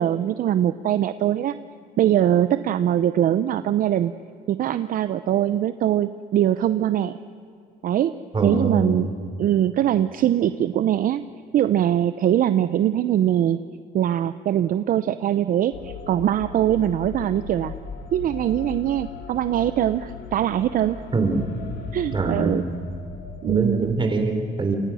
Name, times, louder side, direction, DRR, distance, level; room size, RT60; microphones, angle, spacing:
voice 1, 0.0-1.6 2.0-4.1 4.5-7.1 7.8-8.1 8.4-9.1 9.4-11.2 11.5-13.6 13.9-17.7 18.1-21.0 21.9-22.6 23.4-23.9, right 11 dB, 55° right, 13 dB, 0.7 m, -22 dB
voice 2, 8.3-9.1 21.1-21.4 22.1-22.7 23.5-24.8, right 3 dB, 30° right, 5 dB, 4.0 m, -23 dB
sound 1, 15.7-24.0, left 6 dB, 70° left, 4.2 m, -38 dB
28.0 x 23.5 x 6.4 m, 2.5 s
cardioid pair, 110°, 17 cm